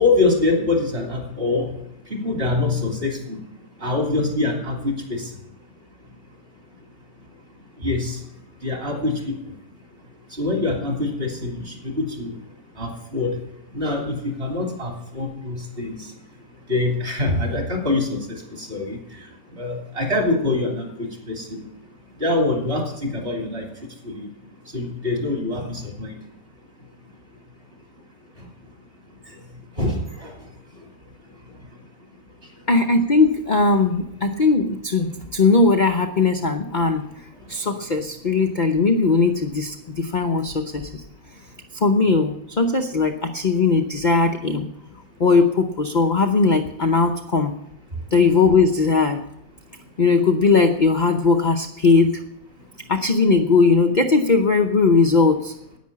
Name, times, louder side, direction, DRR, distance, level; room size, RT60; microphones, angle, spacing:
voice 1, 0.0-1.7 2.2-3.4 3.8-5.3 7.8-8.2 8.6-9.2 10.4-12.3 12.8-13.4 13.7-16.0 16.7-19.0 19.6-21.6 22.2-23.6 24.0-24.3 24.7-26.1 29.8-30.3, left 2 dB, 35° right, 1 dB, 3.1 m, -24 dB
voice 2, 32.7-37.0 37.5-41.0 41.7-44.7 45.2-47.5 48.1-49.2 50.0-52.2 52.9-55.5, left 4 dB, 40° left, 4 dB, 0.7 m, -19 dB
10.5 x 9.4 x 8.5 m, 0.80 s
omnidirectional pair, 1.8 m